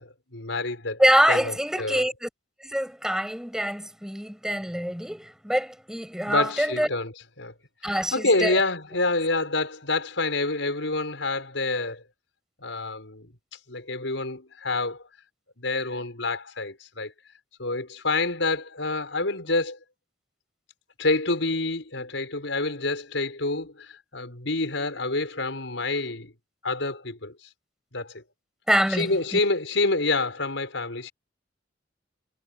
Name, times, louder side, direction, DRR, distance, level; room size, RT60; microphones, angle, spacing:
voice 1, 0.0-1.0 1.3-2.0 6.3-7.1 7.4-7.5 7.8-12.0 12.6-13.3 13.7-15.1 15.6-17.1 17.6-19.8 21.0-26.3 26.6-27.3 27.9-28.2 28.9-31.1, left 2 dB, 85° left, 5.4 m, -27 dB
voice 2, 1.0-2.3 2.6-6.9 7.8-8.6 28.7-29.4, equal, 5° right, 7.6 m, -25 dB
head